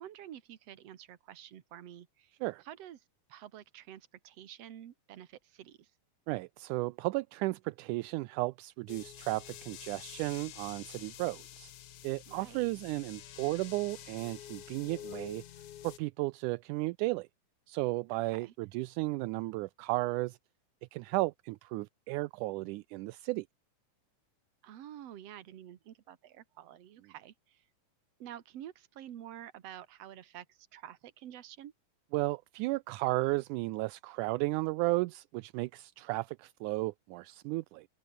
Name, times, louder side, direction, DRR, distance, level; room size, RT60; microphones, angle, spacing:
voice 1, 0.0-2.3 2.6-3.0 3.3-5.9 12.3-12.7 18.3-18.5 24.6-27.6 28.2-31.7, right 11 dB, 60° right, 2.4 m, -49 dB
voice 2, 6.3-11.7 12.0-15.4 15.8-17.3 17.7-20.4 20.9-23.5 32.1-37.9, right 21 dB, 80° right, 2.0 m, -34 dB
sound 1, 8.9-16.0, left 11 dB, 75° left, 2.8 m, -48 dB
open air
omnidirectional pair, 3.6 m